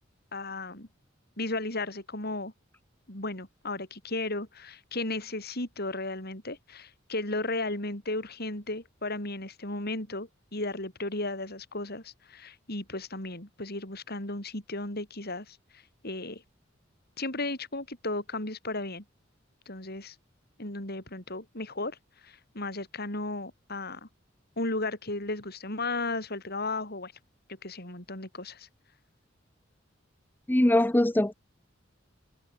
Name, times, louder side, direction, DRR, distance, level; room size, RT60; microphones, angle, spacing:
voice 1, 0.3-0.9 1.4-2.5 3.1-16.4 17.2-19.0 19.7-20.2 20.6-22.0 22.2-24.1 24.6-27.1 27.6-28.7, left 2 dB, 55° left, 7.9 m, -35 dB
voice 2, 30.5-31.3, left 1 dB, 10° left, 0.6 m, -22 dB
head